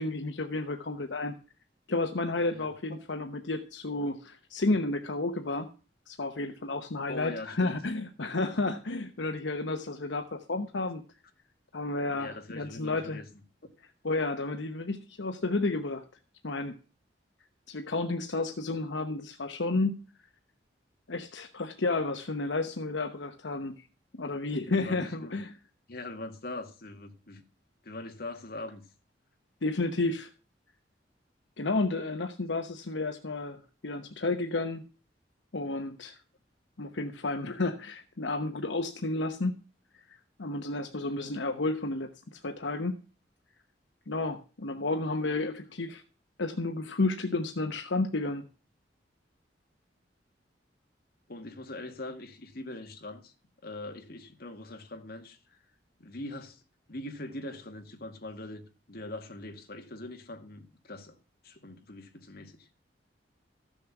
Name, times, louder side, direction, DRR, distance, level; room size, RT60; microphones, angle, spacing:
voice 1, 0.0-1.3 1.9-5.7 6.1-11.0 11.7-13.2 14.0-16.0 16.4-16.7 17.7-20.0 21.1-23.7 24.1-25.5 29.6-30.3 31.6-34.8 35.5-36.2 36.8-39.6 40.4-43.0 44.1-46.0 46.4-48.4, left 2 dB, 80° left, 1.0 m, -31 dB
voice 2, 2.5-3.0 7.1-7.8 12.0-13.3 24.6-25.3 25.9-27.4 27.8-28.8 51.3-53.3 53.6-55.6 56.0-56.6 56.9-61.2 61.4-62.7, left 2 dB, 55° left, 2.0 m, -42 dB
14.0 x 7.0 x 6.0 m
head